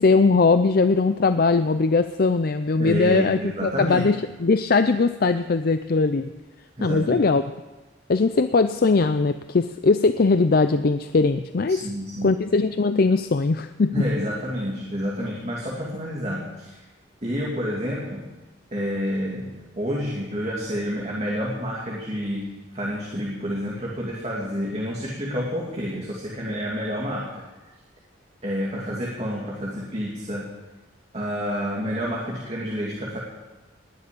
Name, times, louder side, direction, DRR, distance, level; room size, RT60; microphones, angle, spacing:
voice 1, 0.0-6.3 6.8-7.4 8.1-11.8 12.2-14.1, left 4 dB, 50° left, 10 dB, 0.5 m, -20 dB
voice 2, 2.8-4.1 6.8-7.2 11.7-12.4 13.9-16.8 17.2-18.3 18.7-27.4 28.4-30.5 31.1-33.2, equal, 35° right, -4 dB, 2.5 m, -29 dB
19.0 x 7.0 x 10.0 m, 1.2 s
head